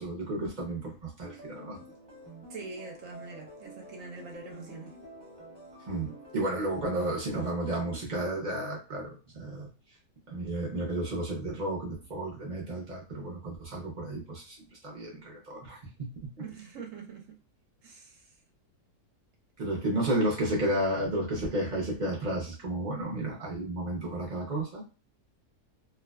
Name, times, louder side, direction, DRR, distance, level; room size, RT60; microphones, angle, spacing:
voice 1, 0.0-1.8 5.9-9.7 10.3-14.6 14.8-16.5 19.6-24.8, right 1 dB, 50° right, -3 dB, 0.5 m, -32 dB
sound 1, 1.2-8.0, right 1 dB, 20° right, 0.8 m, -49 dB
voice 2, 2.5-4.9 16.4-17.2 17.8-18.2, right 4 dB, 65° right, 1 dB, 0.9 m, -44 dB
2.5 x 2.3 x 2.2 m, 0.34 s
omnidirectional pair, 1.7 m